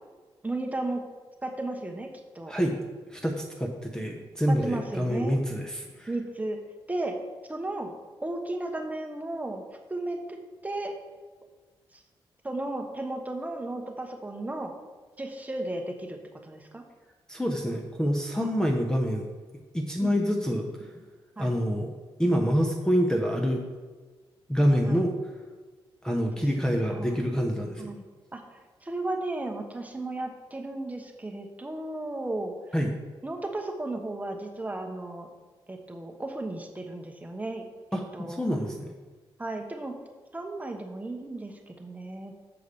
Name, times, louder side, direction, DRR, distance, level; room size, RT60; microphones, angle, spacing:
voice 1, 0.4-1.0 1.4-2.5 4.5-5.4 6.1-6.6 6.9-7.2 7.5-7.9 8.2-9.6 9.9-10.4 10.6-11.0 11.9-12.0 12.4-14.7 15.2-16.8 20.0-20.6 21.4-21.6 24.9-25.1 26.4-27.2 27.8-28.0 28.3-32.5 33.2-35.3 35.7-38.4 39.4-40.0 40.3-42.3, right 2 dB, 15° right, 3 dB, 1.1 m, -35 dB
voice 2, 3.1-6.1 17.3-19.3 19.7-20.7 21.4-21.9 22.2-23.6 24.5-25.3 26.0-27.9 32.7-32.9 37.9-38.9, equal, 5° left, 2 dB, 0.8 m, -26 dB
7.0 x 4.7 x 6.8 m, 1.3 s
cardioid pair, 90°, 10 cm